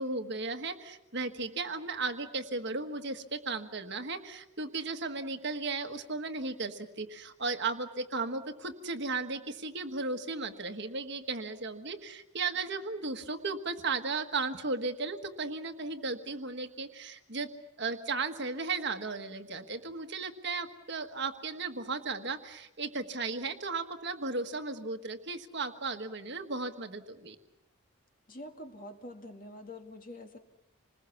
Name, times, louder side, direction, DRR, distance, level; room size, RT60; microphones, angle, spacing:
voice 1, 0.0-17.5 17.8-27.4, right 3 dB, 50° right, 7 dB, 1.5 m, -35 dB
voice 2, 28.3-30.4, left 1 dB, 40° left, 5 dB, 2.0 m, -46 dB
27.0 x 20.5 x 7.1 m, 0.88 s
head